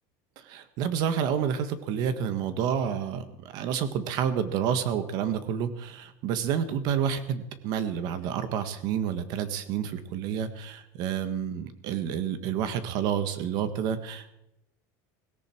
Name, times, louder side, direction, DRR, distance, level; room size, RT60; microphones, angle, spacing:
voice 1, 0.4-14.3, right 8 dB, 45° right, 11 dB, 1.6 m, -29 dB
17.5 x 17.0 x 4.6 m, 0.84 s
cardioid pair, 170°, 9 cm